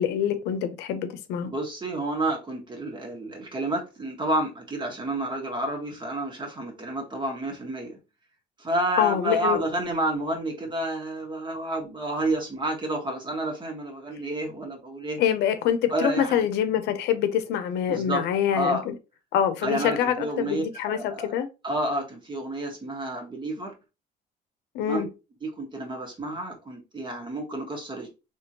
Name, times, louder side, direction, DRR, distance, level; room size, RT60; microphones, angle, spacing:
voice 1, 0.0-1.5 9.0-9.6 15.2-18.9 19.3-21.5 24.7-25.1, left 9 dB, 85° left, 0.7 m, -25 dB
voice 2, 1.4-7.9 8.6-15.2 15.9-16.5 17.9-18.2 18.5-18.8 19.6-21.3 21.6-23.7 24.8-25.1 25.4-28.1, right 1 dB, 25° right, 1.4 m, -30 dB
3.6 x 3.1 x 2.8 m
cardioid pair, 110°, 17 cm